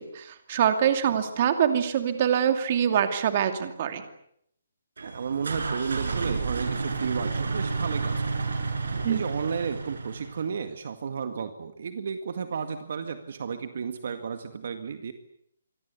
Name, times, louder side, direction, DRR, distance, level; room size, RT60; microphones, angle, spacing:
voice 1, 0.0-4.0 9.0-9.2, right 9 dB, 30° right, 8 dB, 2.6 m, -24 dB
voice 2, 5.0-8.2 9.1-15.1, right 6 dB, 45° right, 8 dB, 2.0 m, -33 dB
sound 1, 5.0-10.5, right 4 dB, 75° right, 7.2 m, -31 dB
27.0 x 23.5 x 8.4 m, 0.72 s
hypercardioid pair, 175°, 0 cm